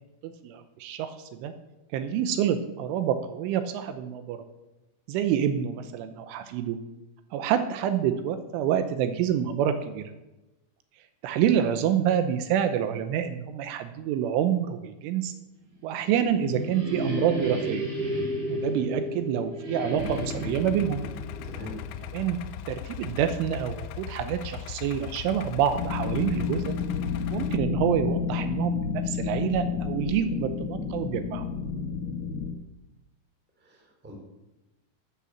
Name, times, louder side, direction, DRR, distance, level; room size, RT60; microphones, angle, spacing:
voice 1, 0.2-1.2 1.4-1.5 1.9-4.4 5.1-6.8 7.3-10.1 11.2-15.3 15.8-17.8 18.5-21.0 22.1-22.4 22.7-26.8 27.3-31.5, right 9 dB, 80° right, 9 dB, 3.2 m, -27 dB
sound 1, 15.9-22.6, equal, 25° right, 2.4 m, -33 dB
Idling, 20.0-27.6, left 11 dB, 80° left, 3.1 m, -39 dB
voice 2, 21.4-21.8 33.6-34.1, left 1 dB, 5° right, 0 dB, 2.1 m, -42 dB
sound 2, 25.7-32.5, left 6 dB, 60° left, 2.1 m, -30 dB
12.5 x 8.5 x 7.3 m, 1.0 s
omnidirectional pair, 5.8 m